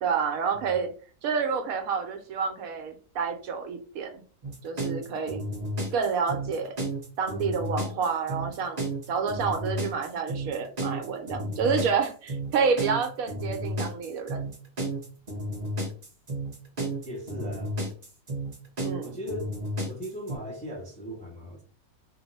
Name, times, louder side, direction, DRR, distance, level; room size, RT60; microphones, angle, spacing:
voice 1, 0.0-0.9 1.2-4.2 4.6-5.4 5.9-6.7 7.2-14.5 18.8-19.1, right 5 dB, 75° right, 1.0 m, -29 dB
sound 1, 4.4-20.4, right 1 dB, 35° right, 0.7 m, -32 dB
voice 2, 17.0-17.7 19.0-19.5 19.8-21.6, equal, 10° left, 0.5 m, -38 dB
2.9 x 2.0 x 4.0 m
omnidirectional pair, 1.6 m